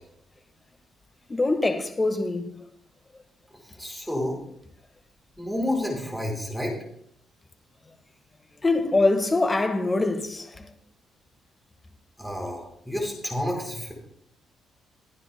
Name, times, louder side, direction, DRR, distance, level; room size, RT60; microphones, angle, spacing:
voice 1, 1.3-2.5 8.6-10.7, left 2 dB, 20° left, 1.4 m, -23 dB
voice 2, 3.6-4.4 5.4-6.7 12.2-13.9, left 1 dB, ahead, 4.4 m, -30 dB
23.0 x 9.9 x 2.2 m
cardioid pair, 90°, 0 cm